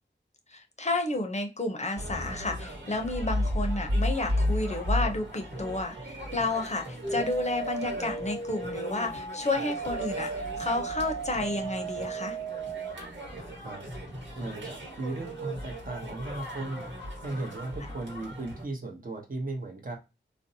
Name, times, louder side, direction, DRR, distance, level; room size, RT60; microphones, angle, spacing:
voice 1, 0.5-12.4, left 2 dB, 35° left, 3 dB, 0.6 m, -31 dB
sound 1, 2.0-18.6, equal, 70° right, 1.3 m, -35 dB
sound 2, 7.0-12.9, right 4 dB, 85° right, 0.8 m, -36 dB
voice 2, 14.4-16.9 17.2-20.0, right 2 dB, 45° right, 2 dB, 0.8 m, -36 dB
2.6 x 2.0 x 2.7 m, 0.26 s
cardioid pair, 45°, 20 cm